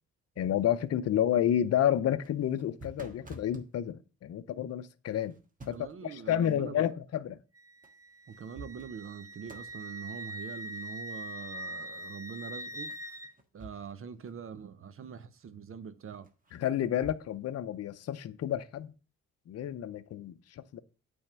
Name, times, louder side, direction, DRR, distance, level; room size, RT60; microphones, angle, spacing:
voice 1, 0.4-5.4 5.7-5.8 6.0-7.4 16.5-18.9 19.5-20.8, left 10 dB, 55° left, 0.7 m, -30 dB
sound 1, 2.1-3.7 5.2-6.0 7.8-7.9 8.3-9.2 9.5-9.8 12.9-14.0 14.3-14.4 16.2-17.2, right 1 dB, 25° right, 1.5 m, -50 dB
voice 2, 5.7-6.9 8.3-12.9 13.5-16.3, right 7 dB, 45° right, 0.8 m, -43 dB
Wind instrument woodwind instrument, 7.5-13.3, right 1 dB, 10° right, 0.6 m, -43 dB
8.8 x 3.6 x 6.7 m
cardioid pair, 90°, 30 cm